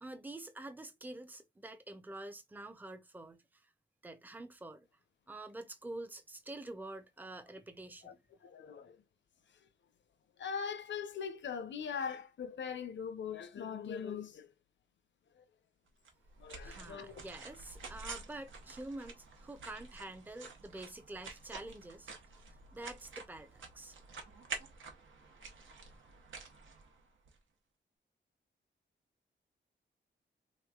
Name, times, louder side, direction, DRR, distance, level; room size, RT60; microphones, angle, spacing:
voice 1, 0.0-3.7 4.0-4.9 5.3-8.2 16.6-22.1 22.7-23.9, right 2 dB, 10° right, 0.5 m, -47 dB
voice 2, 8.4-9.0 10.4-14.5 16.4-17.1, left 6 dB, 70° left, 0.6 m, -41 dB
sound 1, 16.1-27.4, right 4 dB, 85° right, 1.0 m, -49 dB
3.5 x 3.0 x 2.3 m
wide cardioid pair, 165°, 20 cm